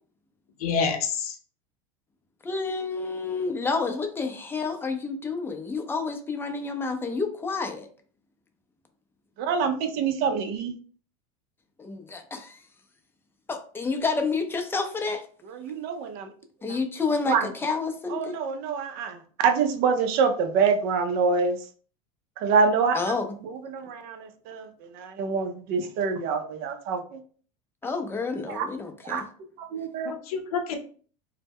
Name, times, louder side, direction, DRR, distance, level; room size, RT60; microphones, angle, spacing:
voice 1, 0.6-1.4 30.0-30.8, left 6 dB, 85° left, 5 dB, 0.6 m, -27 dB
voice 2, 2.4-7.9 11.8-12.6 13.5-15.2 16.6-18.4 22.9-23.3 27.8-29.3, left 4 dB, 10° left, 5 dB, 0.4 m, -29 dB
voice 3, 9.4-10.7 15.5-16.3 16.6-16.8 17.3-17.5 18.1-21.6 22.4-23.0 23.4-24.7 24.9-27.2 28.5-28.7 29.0-29.2 29.7-30.1, right 5 dB, 55° right, 7 dB, 0.5 m, -26 dB
2.1 x 2.1 x 3.4 m, 0.44 s
supercardioid pair, 105°, 19 cm